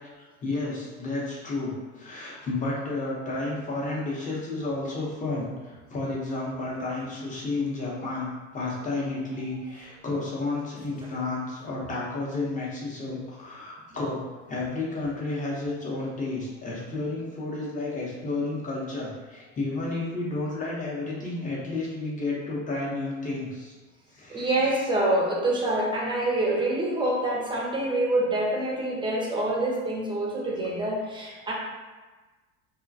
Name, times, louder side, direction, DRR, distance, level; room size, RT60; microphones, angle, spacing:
voice 1, 0.2-14.2 14.5-23.8 24.1-24.7, left 2 dB, 20° left, -5 dB, 0.7 m, -31 dB
voice 2, 24.3-31.5, right 1 dB, 15° right, -3 dB, 0.5 m, -26 dB
2.3 x 2.1 x 2.6 m, 1.3 s
supercardioid pair, 100°, 35 cm